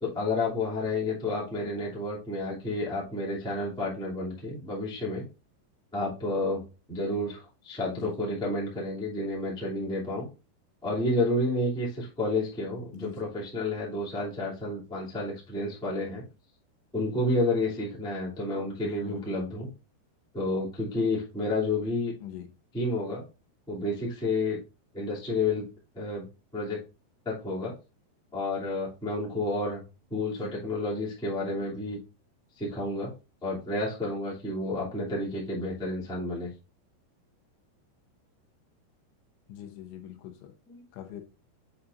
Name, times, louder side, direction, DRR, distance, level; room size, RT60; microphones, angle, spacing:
voice 1, 0.0-5.2 5.9-6.6 6.9-10.3 10.8-16.2 16.9-19.7 20.3-22.1 22.7-23.2 23.7-24.6 24.9-25.7 25.9-26.2 26.5-26.8 27.2-27.7 28.3-29.8 30.1-32.0 32.5-33.1 33.4-36.5 40.7-40.8, left 2 dB, 5° left, 0.7 m, -30 dB
voice 2, 12.9-13.3 18.8-19.3 22.2-22.5 30.3-30.5 39.5-40.6 40.9-41.2, left 10 dB, 80° left, 3.1 m, -43 dB
8.1 x 5.5 x 2.6 m
omnidirectional pair, 5.7 m